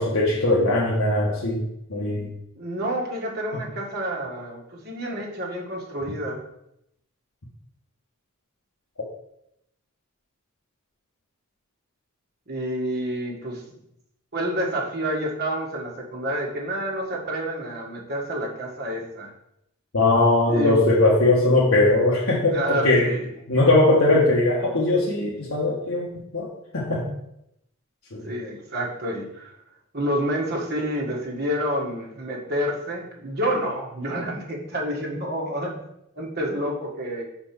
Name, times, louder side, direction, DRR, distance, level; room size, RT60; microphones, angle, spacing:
voice 1, 0.0-2.3 3.5-3.6 19.9-23.1 23.5-26.5 26.7-27.1 28.1-28.2, left 2 dB, 70° left, -5 dB, 1.3 m, -20 dB
voice 2, 2.5-6.4 12.5-13.8 14.3-19.3 20.5-20.9 22.5-23.2 28.2-29.5 29.9-35.8 36.1-37.3, equal, 45° right, -2 dB, 1.7 m, -29 dB
5.3 x 4.4 x 6.0 m, 0.79 s
head